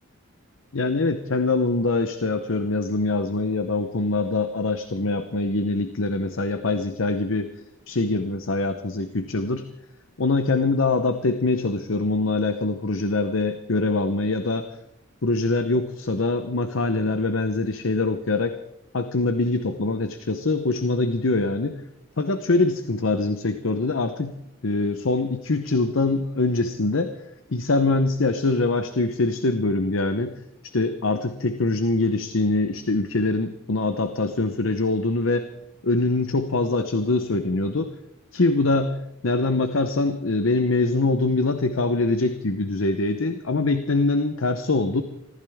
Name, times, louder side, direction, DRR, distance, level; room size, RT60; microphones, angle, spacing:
voice 1, 0.7-7.5 7.9-9.7 10.2-14.7 15.2-18.6 18.9-21.8 22.2-24.3 24.6-27.1 27.5-30.4 30.6-35.5 35.8-37.9 38.3-39.0 39.2-45.0, left 3 dB, 70° left, 9 dB, 0.9 m, -23 dB
24.5 x 15.0 x 3.6 m, 0.81 s
head